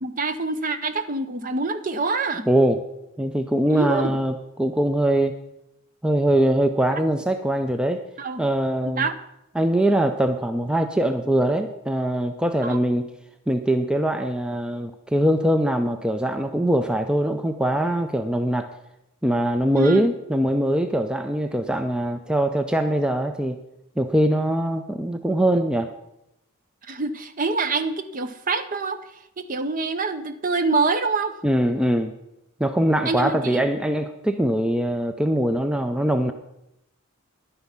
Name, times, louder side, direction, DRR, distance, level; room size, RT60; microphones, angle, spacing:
voice 1, 0.0-2.5 3.7-4.2 8.2-8.4 8.8-9.1 12.6-12.8 19.7-20.0 26.8-29.0 29.4-31.3 33.0-33.6, right 3 dB, 40° right, 11 dB, 0.7 m, -25 dB
voice 2, 2.5-2.8 3.2-5.4 6.0-8.0 8.4-9.0 9.6-13.1 13.5-18.7 19.2-23.6 24.0-25.9 31.4-32.1 32.6-36.3, right 1 dB, 5° right, 8 dB, 0.4 m, -22 dB
11.0 x 9.5 x 5.7 m, 0.86 s
head